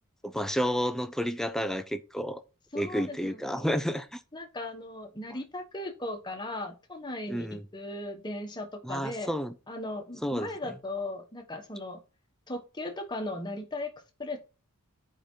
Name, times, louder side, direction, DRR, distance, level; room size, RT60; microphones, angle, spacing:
voice 1, 0.2-2.4 2.7-4.2 7.3-7.6 8.8-9.5 10.2-10.5, equal, ahead, 0.5 m, -30 dB
voice 2, 2.7-3.6 4.3-9.4 9.7-12.0 12.5-13.9 14.2-14.4, left 2 dB, 20° left, 1.3 m, -37 dB
8.0 x 5.1 x 4.5 m
head